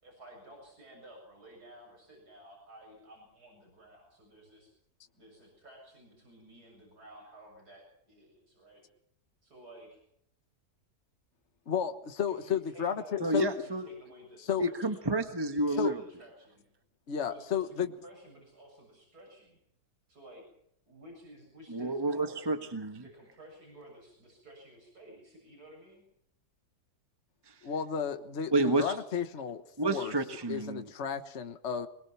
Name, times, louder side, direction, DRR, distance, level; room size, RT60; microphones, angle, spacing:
voice 1, 0.0-4.7 5.1-8.8 9.4-10.0 12.3-15.2 15.7-16.7 17.2-19.6 20.1-20.4 20.9-22.5 23.0-26.0, right 1 dB, 85° right, 1 dB, 7.7 m, -53 dB
voice 2, 11.7-13.5 14.5-14.7 15.8-15.9 17.1-17.9 27.6-30.1 30.5-31.9, left 7 dB, 50° left, 8 dB, 1.6 m, -33 dB
voice 3, 13.2-13.9 14.6-16.0 21.7-23.0 27.5-27.6 28.5-29.0 29.8-30.9, right 2 dB, 15° right, 7 dB, 1.3 m, -30 dB
23.5 x 22.5 x 5.9 m, 0.70 s
omnidirectional pair, 1.6 m